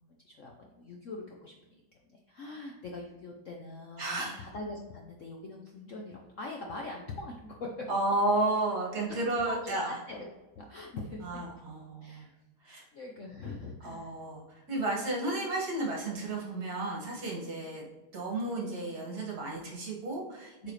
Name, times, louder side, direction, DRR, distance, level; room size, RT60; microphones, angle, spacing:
voice 1, 0.0-7.9 9.1-9.2 9.5-10.3 10.5-11.4 12.0-12.4 12.9-14.2 20.6-20.7, left 2 dB, 65° left, 0 dB, 0.7 m, -42 dB
voice 2, 4.0-4.4 7.9-9.9 11.2-12.3 12.6-12.8 13.8-14.4 14.7-17.9 18.1-20.7, right 2 dB, 50° right, -3 dB, 2.4 m, -32 dB
8.5 x 4.8 x 3.3 m, 1.1 s
omnidirectional pair, 2.3 m